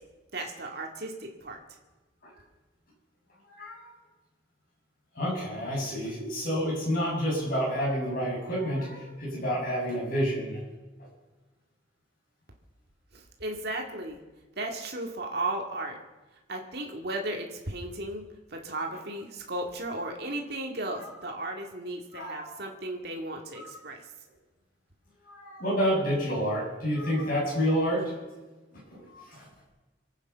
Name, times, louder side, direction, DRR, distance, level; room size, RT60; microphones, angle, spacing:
voice 1, 0.3-1.6 13.1-14.2 14.6-16.0 16.5-18.2 18.5-24.0, right 2 dB, 55° right, 1 dB, 2.1 m, -35 dB
voice 2, 3.5-3.9 5.1-10.6 21.0-21.1 22.1-22.6 23.5-23.7 25.2-28.1 28.9-29.5, equal, 50° left, -4 dB, 7.5 m, -29 dB
26.5 x 9.0 x 5.7 m, 1.2 s
head